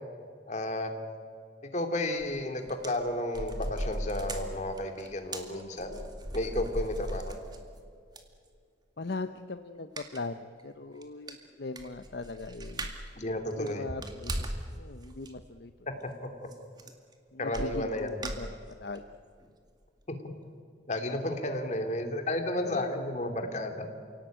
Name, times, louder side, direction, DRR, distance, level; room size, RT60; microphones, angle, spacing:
voice 1, 0.5-0.9 1.7-6.0 6.3-7.4 13.2-13.9 17.4-18.3 20.9-23.9, left 1 dB, 40° left, 6 dB, 2.8 m, -32 dB
sound 1, 2.2-2.4 2.6-7.8 8.2-8.3 10.0-10.3 10.6-10.7 11.0-11.1 11.3-13.1 13.5-14.7 15.0-15.3 16.5-16.6 16.8-17.1 17.5-19.0 19.4-19.5 19.8-19.9, right 1 dB, 25° right, 2.2 m, -38 dB
voice 2, 9.0-13.0 13.6-15.7 17.3-19.0 21.5-21.7 22.6-23.0, left 3 dB, 65° left, 9 dB, 0.7 m, -40 dB
28.5 x 18.0 x 9.1 m, 2.2 s
head